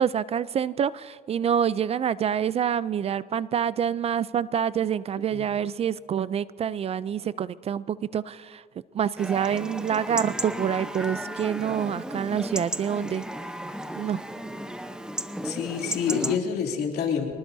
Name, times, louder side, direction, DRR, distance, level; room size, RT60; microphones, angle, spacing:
voice 1, 0.0-8.6 8.9-13.3 14.0-14.2, right 8 dB, 35° right, 18 dB, 0.4 m, -27 dB
Chatter / Livestock farm animals working animals / Chirp tweet, 9.2-16.4, right 1 dB, 5° right, 0.8 m, -34 dB
voice 2, 15.4-17.4, left 6 dB, 70° left, 1 dB, 2.8 m, -27 dB
25.0 x 19.5 x 2.7 m, 2.1 s
cardioid pair, 110°, 17 cm